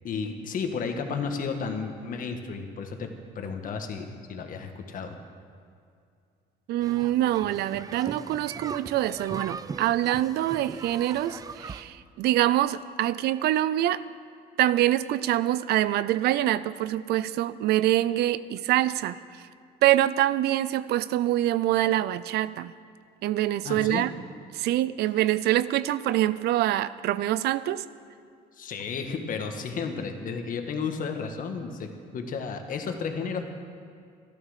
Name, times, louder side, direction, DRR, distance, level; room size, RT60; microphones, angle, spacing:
voice 1, 0.0-3.1 3.3-5.2 23.6-24.0 28.6-33.5, left 5 dB, 55° left, 5 dB, 1.6 m, -33 dB
voice 2, 6.7-14.0 14.6-19.5 19.8-22.7 23.2-24.1 24.5-27.8, right 14 dB, 75° right, 16 dB, 0.5 m, -25 dB
sound 1, 6.8-11.8, right 5 dB, 20° right, 0.4 m, -39 dB
13.0 x 12.0 x 6.6 m, 2.3 s
cardioid pair, 110°, 17 cm